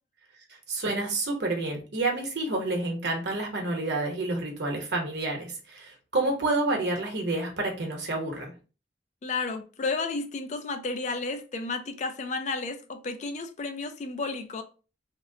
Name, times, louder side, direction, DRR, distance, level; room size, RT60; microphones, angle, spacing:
voice 1, 0.7-8.5, right 2 dB, 65° right, 0.9 m, -29 dB
voice 2, 9.2-14.6, left 3 dB, 40° left, 0.4 m, -32 dB
2.9 x 2.0 x 3.6 m
head